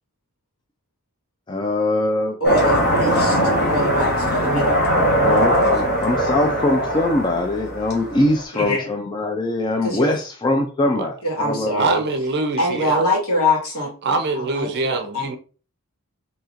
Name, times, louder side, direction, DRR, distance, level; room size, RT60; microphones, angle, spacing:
voice 1, 1.5-2.4 5.2-11.9, left 2 dB, 20° left, 0.3 m, -22 dB
voice 2, 2.4-3.4 3.7-4.8 8.5-8.9 9.8-10.1 11.2-12.0 12.6-13.9 14.3-15.4, left 1 dB, 70° left, 1.8 m, -23 dB
sound 1, 2.4-8.4, equal, 45° left, 1.1 m, -20 dB
voice 3, 11.8-13.0 14.0-15.4, right 3 dB, 50° right, 0.5 m, -24 dB
4.1 x 2.8 x 2.4 m
head